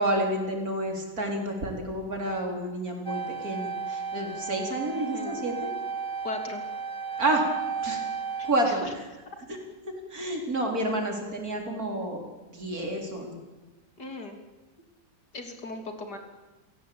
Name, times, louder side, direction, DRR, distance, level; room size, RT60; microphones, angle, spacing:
voice 1, 0.0-5.7 7.2-7.4 7.8-8.0 8.4-8.8 9.5-9.6 10.1-12.2 12.5-13.3, right 1 dB, 50° right, 2 dB, 4.6 m, -29 dB
sound 1, 3.1-8.5, right 5 dB, 20° right, 0.5 m, -34 dB
voice 2, 5.0-5.6 6.2-6.6 8.6-8.9 14.0-14.4 15.3-16.2, left 2 dB, 60° left, 5 dB, 3.5 m, -38 dB
29.0 x 17.0 x 8.7 m, 1.2 s
omnidirectional pair, 2.0 m